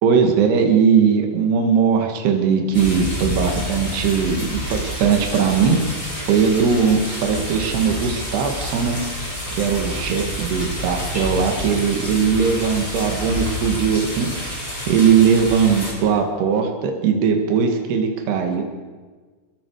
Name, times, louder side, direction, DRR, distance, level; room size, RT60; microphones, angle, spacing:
voice 1, 0.0-6.0 6.3-9.0 9.5-14.5 14.9-18.6, right 6 dB, 70° right, 3 dB, 4.0 m, -19 dB
sound 1, 2.7-15.9, equal, 10° left, 5.4 m, -28 dB
25.5 x 21.0 x 4.9 m, 1.4 s
omnidirectional pair, 5.0 m